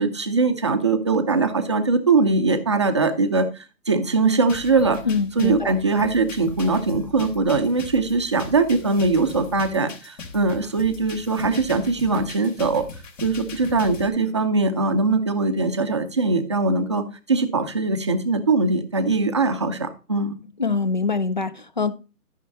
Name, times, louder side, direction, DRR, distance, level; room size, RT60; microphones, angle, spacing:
voice 1, 0.0-5.0 5.4-12.8 13.2-20.3, right 3 dB, 20° right, 0.6 m, -21 dB
sound 1, 4.5-14.1, left 4 dB, 55° left, 3.0 m, -40 dB
voice 2, 5.1-5.7 20.6-21.9, left 4 dB, 35° left, 0.4 m, -24 dB
13.5 x 5.8 x 4.1 m
hypercardioid pair, 150°, 46 cm